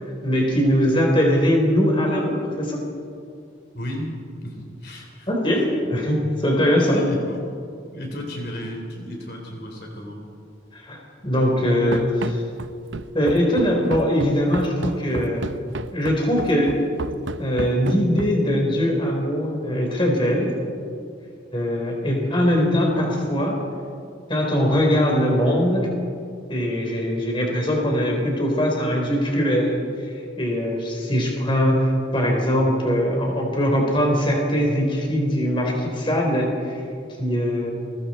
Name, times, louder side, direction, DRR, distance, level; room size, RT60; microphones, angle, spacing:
voice 1, 0.2-2.8 5.3-7.0 10.7-12.4 13.1-15.4 15.9-16.8 17.4-20.5 21.5-23.6 24.3-25.9 26.5-29.8 30.4-36.8 37.2-37.7, equal, 25° left, 0 dB, 4.1 m, -21 dB
voice 2, 3.7-5.3 6.9-7.4 7.9-10.2, left 1 dB, 55° left, 1 dB, 3.8 m, -33 dB
Run, 11.9-18.5, right 3 dB, 75° right, 0.7 m, -32 dB
29.0 x 23.0 x 4.4 m, 2.4 s
head